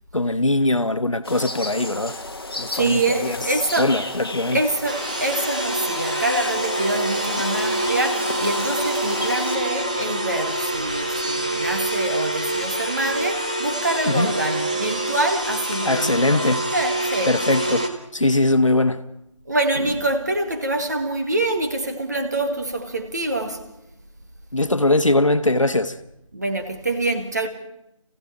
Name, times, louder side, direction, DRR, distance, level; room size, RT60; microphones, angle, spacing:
voice 1, 0.1-2.2 2.5-3.4 3.8-4.6 14.0-14.3 15.8-16.6 17.3-19.1 24.5-26.0, left 2 dB, 65° left, 1.3 m, -21 dB
sound 1, 1.2-9.6, left 2 dB, 45° left, 1.3 m, -32 dB
voice 2, 2.7-4.0 4.5-17.4 17.6-17.8 19.4-23.7 26.3-27.5, right 2 dB, 30° right, 1.7 m, -25 dB
sound 2, 4.9-17.9, right 1 dB, 15° right, 0.8 m, -26 dB
27.0 x 16.5 x 5.8 m
figure-of-eight pair, 165°, 18 cm